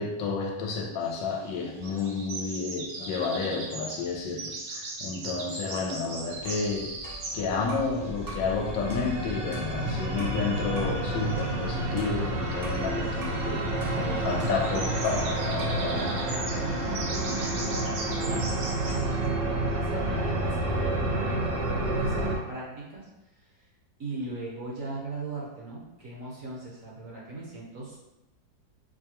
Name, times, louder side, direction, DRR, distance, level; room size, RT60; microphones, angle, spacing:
voice 1, 0.0-16.1, left 4 dB, 80° left, 1 dB, 1.3 m, -31 dB
sound 1, 1.0-19.3, right 3 dB, 85° right, 1.4 m, -40 dB
sound 2, 6.4-8.0 8.3-8.5 8.9-10.4 10.7-11.0 11.4-12.9 13.2-13.4 13.8-15.3 15.6-15.9, right 1 dB, 25° right, 0.4 m, -45 dB
sound 3, 6.4-22.4, right 2 dB, 70° right, 1.6 m, -30 dB
voice 2, 13.9-14.5 15.9-19.0 19.4-23.1 23.4-23.7 24.0-28.0, right 2 dB, 55° right, -5 dB, 1.0 m, -39 dB
4.8 x 2.2 x 2.9 m, 0.93 s
omnidirectional pair, 2.0 m